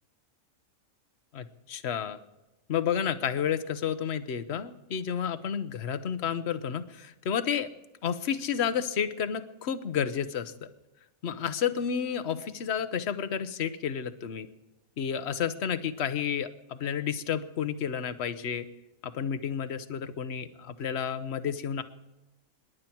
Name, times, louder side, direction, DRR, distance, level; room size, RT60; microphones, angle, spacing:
voice 1, 1.3-2.2 2.7-7.7 8.0-10.7 11.2-14.5 15.0-18.7 19.0-21.8, left 8 dB, 55° left, 12 dB, 1.1 m, -31 dB
27.0 x 11.0 x 4.5 m, 1.0 s
omnidirectional pair, 1.4 m